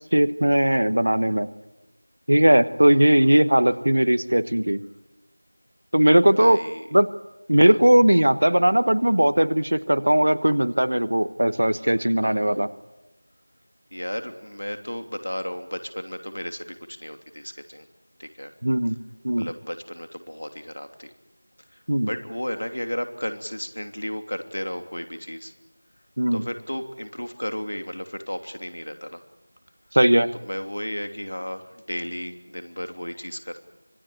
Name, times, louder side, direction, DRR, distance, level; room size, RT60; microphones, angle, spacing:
voice 1, 0.1-1.5 2.3-4.8 5.9-6.6 6.9-7.1 7.5-12.7 18.6-19.0 19.2-19.5 21.9-22.1 26.2-26.4 29.9-30.3, right 1 dB, 45° right, 15 dB, 1.2 m, -19 dB
voice 2, 6.4-6.8 7.6-7.8 12.2-12.6 13.9-17.9 18.2-18.5 19.4-21.1 21.7-21.8 22.0-25.5 26.3-29.2 30.4-33.7, equal, 60° left, 7 dB, 3.0 m, -34 dB
26.0 x 20.5 x 9.1 m, 0.96 s
figure-of-eight pair, 175°, 0 cm